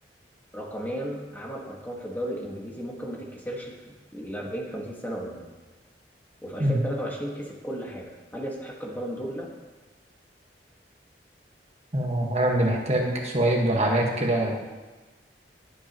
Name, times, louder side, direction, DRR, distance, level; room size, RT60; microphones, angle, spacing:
voice 1, 0.5-5.4 6.4-9.5, equal, 10° left, -2 dB, 1.7 m, -35 dB
voice 2, 11.9-14.6, right 1 dB, 40° right, 0 dB, 1.6 m, -24 dB
20.5 x 8.3 x 3.1 m, 1.2 s
head